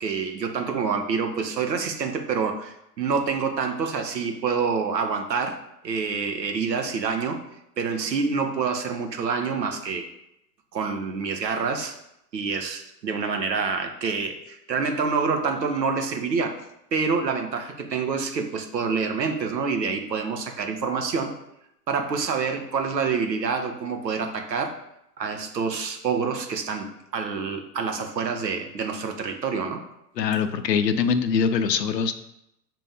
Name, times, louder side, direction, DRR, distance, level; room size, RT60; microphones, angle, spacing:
voice 1, 0.0-5.6 5.8-7.4 7.8-10.1 10.7-11.9 12.3-16.6 16.9-21.3 21.9-24.7 25.2-29.8, right 5 dB, 90° right, 5 dB, 0.8 m, -27 dB
voice 2, 30.2-32.1, left 6 dB, 90° left, 11 dB, 0.6 m, -23 dB
5.8 x 2.6 x 3.4 m, 0.82 s
hypercardioid pair, 105°, 48 cm